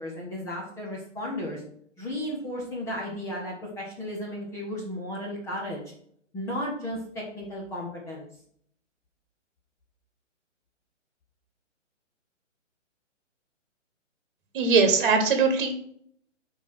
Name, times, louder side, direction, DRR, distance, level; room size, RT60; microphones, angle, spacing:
voice 1, 0.0-1.6 2.0-5.8 6.3-8.3, left 1 dB, 5° left, -3 dB, 0.8 m, -34 dB
voice 2, 14.5-15.7, right 4 dB, 40° right, 6 dB, 1.4 m, -21 dB
5.4 x 4.6 x 6.2 m, 0.66 s
hypercardioid pair, 145°, 38 cm